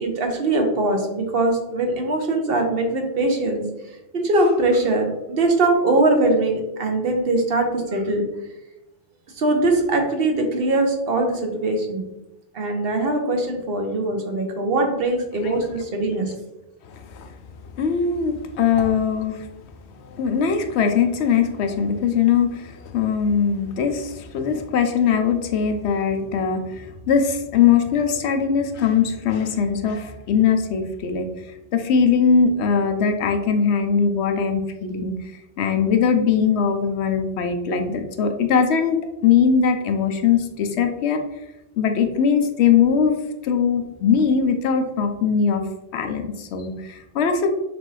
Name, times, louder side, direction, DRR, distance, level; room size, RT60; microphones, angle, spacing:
voice 1, 0.0-3.6 4.1-8.2 9.4-12.0 12.5-16.3, right 2 dB, 60° right, 3 dB, 1.0 m, -21 dB
voice 2, 16.9-17.3 17.7-19.5 20.0-31.3 31.7-35.1 35.6-41.2 41.8-43.2 43.4-45.6 45.9-47.5, left 6 dB, 75° left, 6 dB, 0.8 m, -21 dB
5.8 x 2.6 x 3.2 m, 0.95 s
omnidirectional pair, 1.1 m